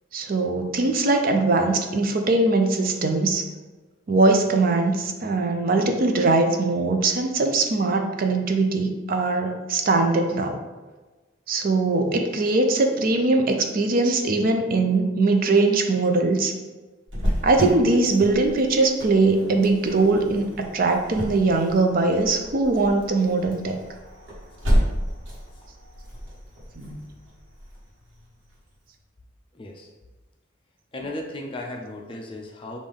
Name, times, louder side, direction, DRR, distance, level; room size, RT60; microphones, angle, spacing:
voice 1, 0.1-3.4 4.1-10.6 11.5-16.5 17.4-23.8 26.8-27.0, right 3 dB, 45° right, 4 dB, 0.4 m, -21 dB
Cricket, 17.1-28.5, equal, 70° right, 1.3 m, -31 dB
voice 2, 29.5-29.9 30.9-32.8, left 1 dB, 25° left, 1 dB, 0.5 m, -35 dB
5.3 x 2.6 x 3.5 m, 1.2 s
head